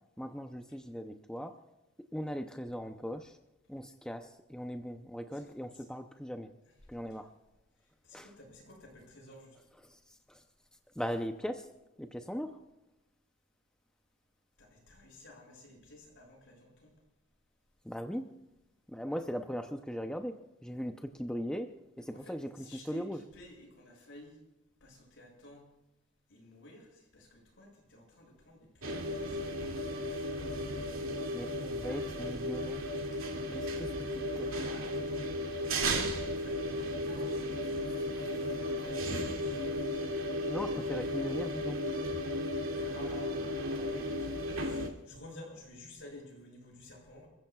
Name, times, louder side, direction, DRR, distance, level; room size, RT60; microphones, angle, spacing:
voice 1, 0.2-1.6 2.1-3.4 3.7-6.5 6.9-7.3 8.1-8.3 9.7-10.4 11.0-11.7 12.0-12.6 17.8-18.3 18.9-23.3 31.3-32.9 33.5-34.6 37.9-38.7 39.6-40.1 40.5-41.8, equal, 5° left, 5 dB, 0.6 m, -39 dB
voice 2, 8.1-9.6 14.6-16.9 22.3-22.4 22.6-24.4 24.8-25.7 26.3-29.3 33.1-33.2 34.6-35.9 36.3-37.3 38.4-39.7 42.7-44.3 44.5-47.3, left 1 dB, 65° left, -1 dB, 7.1 m, -53 dB
sound 1, 28.8-44.9, equal, 85° right, 2.4 m, -35 dB
30.0 x 15.5 x 2.4 m, 0.96 s
head